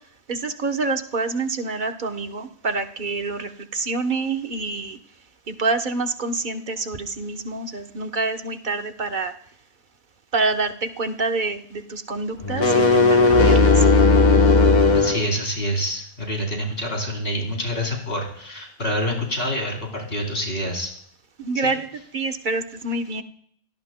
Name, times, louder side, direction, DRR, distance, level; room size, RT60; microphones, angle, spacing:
voice 1, 0.3-5.0 5.5-9.3 10.3-13.8 21.4-21.9 22.1-23.2, right 3 dB, 50° right, 6 dB, 1.2 m, -27 dB
sound 1, 12.4-15.2, left 3 dB, 45° left, 1.3 m, -15 dB
voice 2, 14.9-20.9 21.6-21.7, equal, 65° left, -1 dB, 4.0 m, -27 dB
28.5 x 18.0 x 2.2 m, 0.67 s
omnidirectional pair, 1.1 m